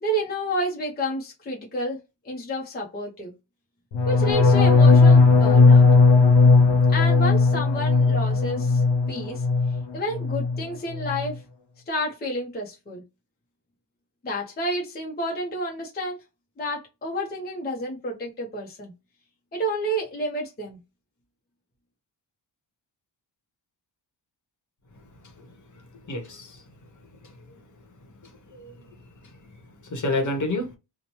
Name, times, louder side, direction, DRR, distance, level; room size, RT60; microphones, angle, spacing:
voice 1, 0.0-2.0 2.2-3.3 4.1-5.9 6.9-9.4 9.9-11.4 11.9-13.0 14.2-16.2 16.6-18.9 19.5-20.8, equal, 20° left, 0.6 m, -30 dB
sound 1, 3.9-9.8 10.1-10.6 10.9-11.3, left 4 dB, 80° left, 0.7 m, -17 dB
voice 2, 26.1-26.6 27.2-27.6 28.5-28.7 29.9-30.8, left 2 dB, 45° left, 0.9 m, -29 dB
2.9 x 2.1 x 2.9 m
wide cardioid pair, 160°, 43 cm